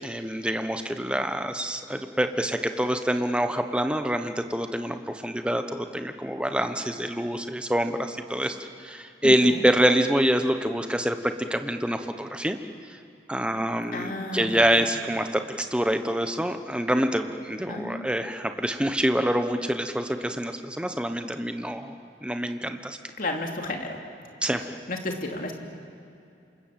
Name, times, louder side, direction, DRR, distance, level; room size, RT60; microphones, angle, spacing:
voice 1, 0.0-12.6 12.9-13.0 13.3-21.9 22.2-23.0 24.4-24.7, equal, 5° right, 7 dB, 1.1 m, -26 dB
voice 2, 9.2-9.7 13.9-14.9 17.7-18.1 23.2-24.0 24.5-25.6, left 2 dB, 50° left, 2 dB, 2.8 m, -33 dB
28.0 x 26.0 x 7.7 m, 2.6 s
head